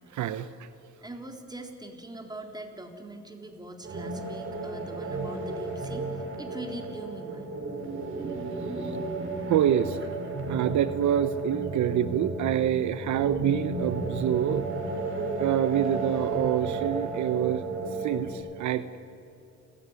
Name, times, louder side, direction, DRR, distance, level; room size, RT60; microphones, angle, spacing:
voice 1, 0.1-0.7 8.8-8.9 9.5-10.0 10.5-14.7 15.4-17.6 18.0-19.0, right 11 dB, 70° right, 12 dB, 0.9 m, -26 dB
voice 2, 1.0-7.5, right 2 dB, 15° right, 3 dB, 3.8 m, -42 dB
sound 1, 3.8-18.3, right 3 dB, 45° right, 4.7 m, -33 dB
29.5 x 15.0 x 9.7 m, 2.7 s
cardioid pair, 90°, 30 cm